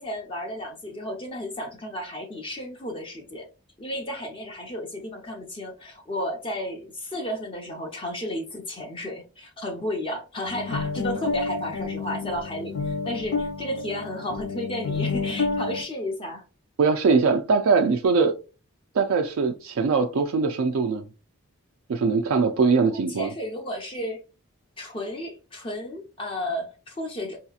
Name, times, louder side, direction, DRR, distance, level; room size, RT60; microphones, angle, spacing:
voice 1, 0.0-3.5 3.8-16.4 23.1-24.2 24.8-27.4, left 1 dB, 25° left, 0.6 m, -33 dB
sound 1, 10.5-15.8, left 4 dB, 85° left, 0.8 m, -29 dB
voice 2, 16.8-18.3 18.9-21.0 21.9-23.3, right 4 dB, 65° right, 0.3 m, -21 dB
4.8 x 2.8 x 2.3 m
head